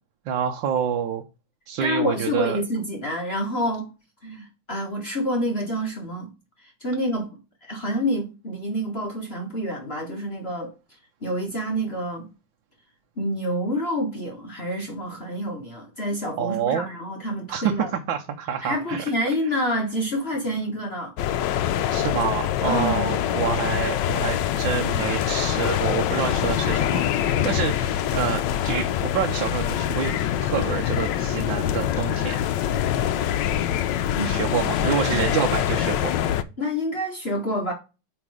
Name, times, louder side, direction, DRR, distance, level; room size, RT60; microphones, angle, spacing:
voice 1, 0.3-1.2 1.7-2.6 16.4-16.9 17.5-19.0 19.5-19.6 21.9-32.4 34.2-36.1, right 8 dB, 80° right, 1.5 m, -27 dB
voice 2, 1.8-3.9 4.2-6.3 6.8-7.3 7.6-10.7 11.2-12.3 13.2-17.9 18.6-21.1 22.6-23.1 34.1-34.6 34.8-35.2 36.6-37.7, equal, 35° left, 1.6 m, -28 dB
sound 1, 21.2-36.4, left 10 dB, 75° left, 1.3 m, -24 dB
8.6 x 3.8 x 4.8 m
omnidirectional pair, 2.0 m